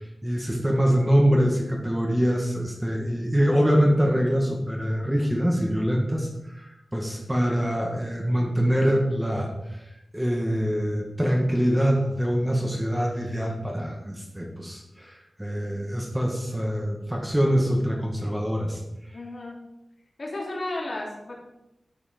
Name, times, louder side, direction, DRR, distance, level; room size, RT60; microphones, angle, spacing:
voice 1, 0.2-9.5 10.1-18.8, equal, 10° right, 0 dB, 2.0 m, -24 dB
voice 2, 19.1-19.6 20.2-21.3, left 2 dB, 50° left, -2 dB, 3.4 m, -33 dB
13.0 x 6.5 x 6.1 m, 0.89 s
wide cardioid pair, 115°, 0 cm